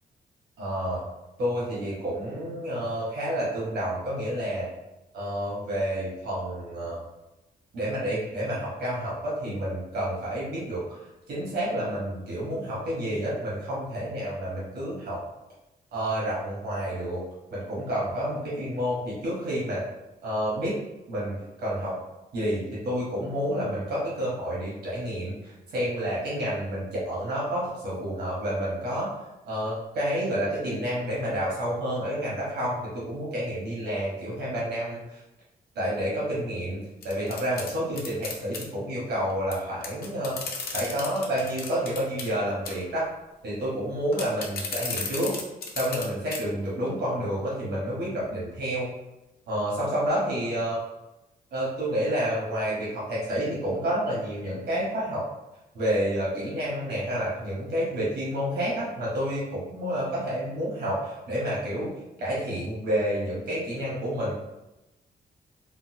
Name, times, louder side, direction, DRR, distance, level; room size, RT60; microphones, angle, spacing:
voice 1, 0.6-1.0 1.4-4.7 5.1-7.0 7.7-11.0 11.3-15.2 15.9-17.2 17.5-19.8 20.2-20.7 21.1-22.0 22.3-29.1 29.4-35.2 35.7-40.4 40.7-43.1 43.4-45.3 45.7-48.9 49.5-50.8 51.5-55.2 55.7-61.9 62.2-64.3, equal, 85° right, -6 dB, 1.2 m, -29 dB
sound 1, 37.0-38.6 39.5-39.6 39.8-42.3 42.7-42.9 44.1-46.1 46.3-46.4 46.9-47.0, left 4 dB, 70° left, 0.6 m, -34 dB
3.9 x 2.1 x 2.7 m, 0.97 s
cardioid pair, 90°, 16 cm